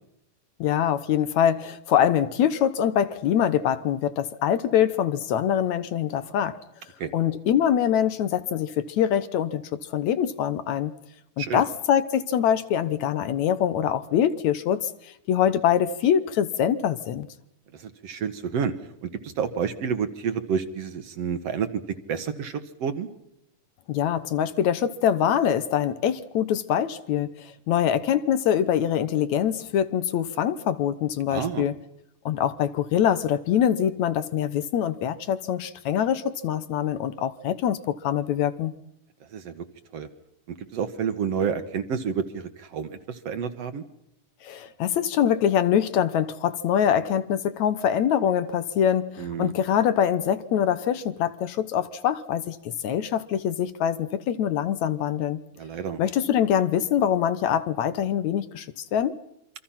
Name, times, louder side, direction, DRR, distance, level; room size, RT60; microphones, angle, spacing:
voice 1, 0.6-6.6 7.1-10.9 11.5-17.3 23.9-31.7 32.3-38.7 44.4-55.4 56.0-59.2, left 9 dB, 70° left, 13 dB, 2.2 m, -24 dB
voice 2, 17.7-18.7 19.0-21.8 22.1-23.1 31.3-31.7 39.3-39.7 39.9-40.1 40.5-43.8 49.2-49.5 55.6-56.0, right 7 dB, 60° right, 10 dB, 2.2 m, -29 dB
27.5 x 25.0 x 5.8 m, 0.77 s
omnidirectional pair, 3.6 m